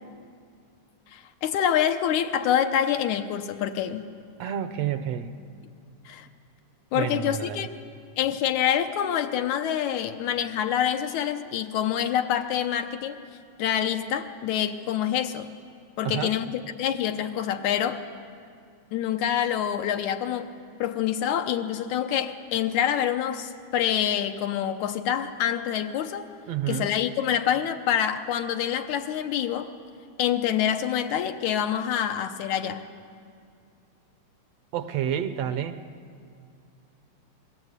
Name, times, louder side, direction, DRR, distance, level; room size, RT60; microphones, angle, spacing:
voice 1, 1.1-4.1 6.1-6.3 6.9-7.7 8.2-13.2 13.6-15.5 16.0-18.0 18.9-20.5 20.8-26.3 26.7-29.7 30.2-32.8, left 10 dB, 80° left, 6 dB, 2.3 m, -26 dB
voice 2, 4.4-5.3 6.9-7.7 16.0-16.3 26.5-27.0 34.7-35.8, right 9 dB, 70° right, 10 dB, 1.8 m, -29 dB
27.0 x 20.5 x 8.2 m, 2.3 s
omnidirectional pair, 3.4 m